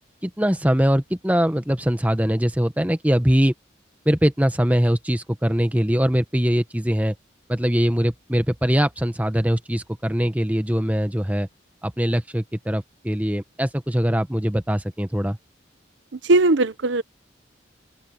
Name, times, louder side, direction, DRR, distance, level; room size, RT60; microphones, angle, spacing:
voice 1, 0.2-3.5 4.0-7.1 7.5-11.5 11.8-15.4, equal, 10° right, 1.2 m, -22 dB
voice 2, 16.1-17.0, right 2 dB, 75° right, 0.7 m, -19 dB
open air
head